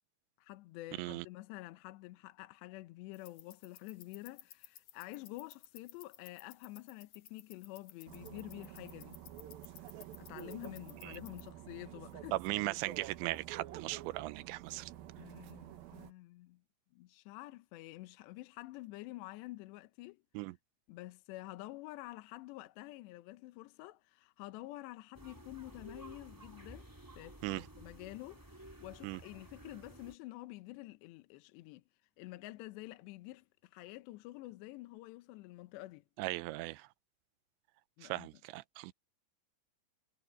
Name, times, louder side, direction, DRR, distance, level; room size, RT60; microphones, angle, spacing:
voice 1, 0.4-9.2 10.2-12.4 15.2-16.6 16.9-20.2 20.9-26.9 27.2-31.8 32.2-36.0 38.0-38.3, left 18 dB, 80° left, 3.0 m, -49 dB
sound 1, 3.1-11.5, left 11 dB, 65° left, 2.2 m, -57 dB
sound 2, 8.1-16.1, right 12 dB, 70° right, 2.6 m, -49 dB
voice 2, 12.3-14.9 20.3-20.5 27.4-27.7 29.0-29.2 36.2-36.9 38.0-38.9, right 19 dB, 90° right, 3.0 m, -38 dB
sound 3, 25.1-30.2, right 1 dB, 10° right, 1.4 m, -54 dB
omnidirectional pair, 5.1 m